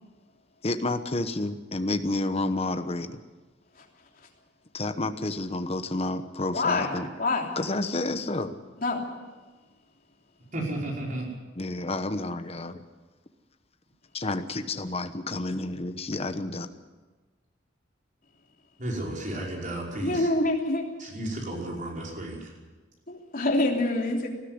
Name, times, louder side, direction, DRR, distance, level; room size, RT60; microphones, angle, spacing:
voice 1, 0.6-3.2 4.7-7.1 7.6-8.5 11.6-12.8 14.1-16.7, left 2 dB, 35° left, 9 dB, 1.1 m, -30 dB
voice 2, 6.5-6.9 7.2-7.5 8.8-9.0 20.0-20.8 23.1-24.3, left 2 dB, 50° left, 0 dB, 3.3 m, -25 dB
voice 3, 10.5-11.3 18.8-20.3 21.0-22.5, right 1 dB, 45° right, -2 dB, 5.5 m, -33 dB
19.5 x 14.0 x 9.8 m, 1.3 s
head